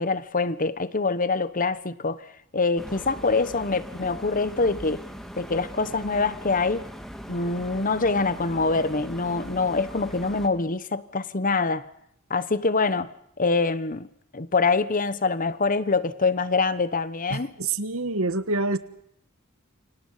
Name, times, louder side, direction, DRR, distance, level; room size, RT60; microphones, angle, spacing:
voice 1, 0.0-2.3 2.5-5.1 5.4-6.9 7.3-11.9 12.3-14.1 14.3-17.5, left 3 dB, 40° left, 1.2 m, -25 dB
sound 1, 2.8-10.5, equal, ahead, 3.1 m, -40 dB
voice 2, 17.3-18.8, right 2 dB, 80° right, 1.6 m, -26 dB
29.0 x 25.0 x 5.7 m
head